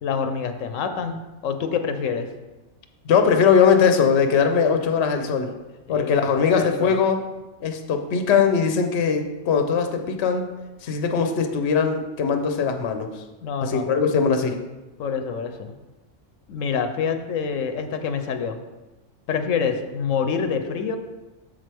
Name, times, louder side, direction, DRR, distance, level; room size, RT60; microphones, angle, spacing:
voice 1, 0.0-2.3 5.9-7.0 13.4-14.0 15.0-15.7 16.5-18.6 19.3-21.0, left 6 dB, 90° left, 7 dB, 1.1 m, -27 dB
voice 2, 3.1-5.5 5.9-7.2 7.6-10.5 10.8-13.1 13.6-14.6, left 6 dB, 65° left, 6 dB, 1.0 m, -20 dB
7.4 x 7.1 x 3.4 m, 1.1 s
omnidirectional pair, 1.3 m